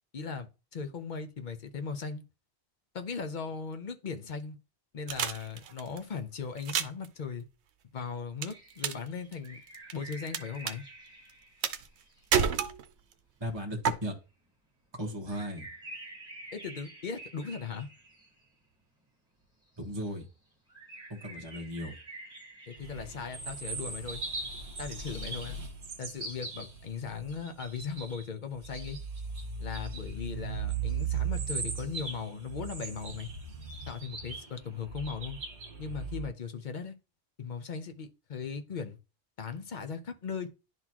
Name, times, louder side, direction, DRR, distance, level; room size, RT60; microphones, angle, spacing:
voice 1, 0.1-2.2 2.9-4.6 4.9-7.5 7.9-9.6 9.9-10.8 16.5-17.9 22.7-24.2 24.8-25.6 26.0-29.0 29.6-33.3 33.9-35.4 35.8-37.0 37.4-39.0 39.4-40.5, left 5 dB, 50° left, 0.8 m, -38 dB
sound 1, 5.1-6.0 6.6-7.1 8.4-9.1 9.3-10.4 10.7-10.8 11.6-12.0 12.3-13.1 13.8-13.9, right 7 dB, 85° right, 0.9 m, -29 dB
sound 2, 8.4-12.3 14.2-14.3 15.3-18.7 19.7-20.2 20.7-23.8, right 2 dB, 5° right, 1.7 m, -49 dB
voice 2, 13.4-14.1 15.0-15.7 19.8-20.3 21.1-21.9, equal, 25° right, 1.3 m, -36 dB
sound 3, 22.8-28.2 28.6-36.3, right 5 dB, 70° right, 1.5 m, -38 dB
10.5 x 4.0 x 2.9 m
omnidirectional pair, 1.1 m